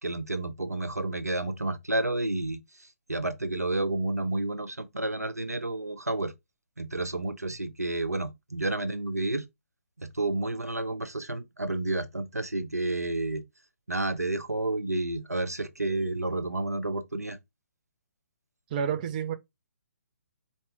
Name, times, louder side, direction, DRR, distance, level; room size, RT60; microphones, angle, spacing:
voice 1, 0.0-6.3 6.8-9.4 10.0-13.4 13.9-17.4, right 2 dB, 85° right, 0.8 m, -30 dB
voice 2, 18.7-19.3, right 7 dB, 30° right, 0.6 m, -29 dB
4.4 x 2.8 x 3.4 m
figure-of-eight pair, 135°, 8 cm